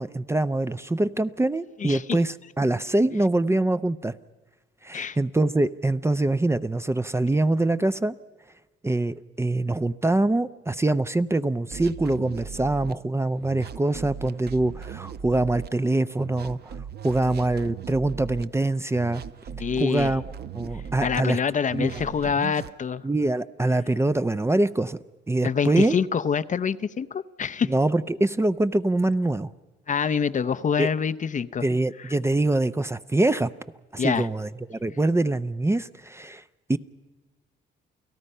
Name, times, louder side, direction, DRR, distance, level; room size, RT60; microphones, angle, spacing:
voice 1, 0.0-4.1 4.8-8.2 8.8-16.7 17.0-19.2 19.8-20.2 20.5-21.4 21.7-22.0 23.0-25.0 25.3-25.9 27.6-29.5 30.8-30.9 31.6-33.5 33.9-36.4 36.7-36.8, right 2 dB, 15° right, 13 dB, 0.6 m, -24 dB
sound 1, 11.7-12.9 13.4-15.7 16.2-18.4 18.9-21.2 21.7-22.7, right 7 dB, 55° right, 0.8 m, -38 dB
voice 2, 19.6-20.1 21.0-23.0 25.4-27.7 29.9-31.6 32.0-32.1 34.0-34.3, left 6 dB, 40° left, 13 dB, 0.7 m, -26 dB
29.5 x 17.5 x 5.5 m, 1.3 s
cardioid pair, 90°, 20 cm